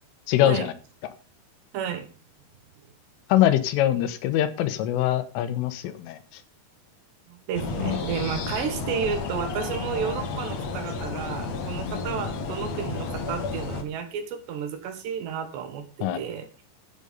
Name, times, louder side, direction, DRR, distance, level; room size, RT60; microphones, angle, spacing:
voice 1, 0.3-0.7 3.3-6.2 7.8-8.0 16.0-16.2, left 12 dB, 80° left, 12 dB, 3.5 m, -23 dB
voice 2, 1.7-2.1 7.3-16.6, right 7 dB, 65° right, 8 dB, 3.3 m, -32 dB
sound 1, 7.5-13.8, left 4 dB, 60° left, 1.8 m, -32 dB
14.0 x 8.1 x 5.2 m, 0.32 s
omnidirectional pair, 5.9 m